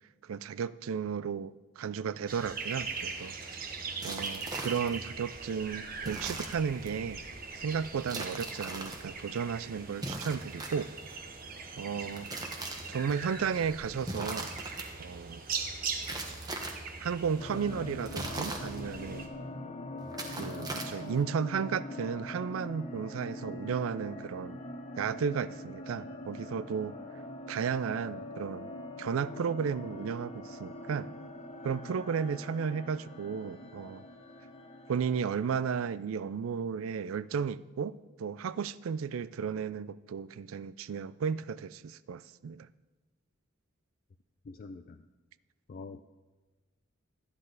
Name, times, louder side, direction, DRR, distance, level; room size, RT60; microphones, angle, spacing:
voice 1, 0.2-3.3 4.0-7.2 7.6-10.9 11.8-12.3 12.9-14.5 15.0-15.4 17.0-19.3 20.4-24.6 25.0-27.0 27.5-28.7 29.0-31.1 31.6-34.0 34.9-42.7, right 6 dB, 85° right, 0.4 m, -34 dB
sound 1, 2.3-19.3, right 4 dB, 45° right, 1.1 m, -41 dB
sound 2, 4.0-5.1 6.0-6.9 8.0-9.0 10.0-11.2 12.0-13.1 14.0-14.9 16.0-16.9 18.0-19.1 20.0-21.2, right 2 dB, 20° right, 1.1 m, -40 dB
sound 3, 17.4-36.3, left 1 dB, 30° left, 0.8 m, -43 dB
voice 2, 44.5-45.0 45.7-46.0, left 3 dB, 45° left, 0.4 m, -45 dB
13.0 x 9.8 x 4.0 m
head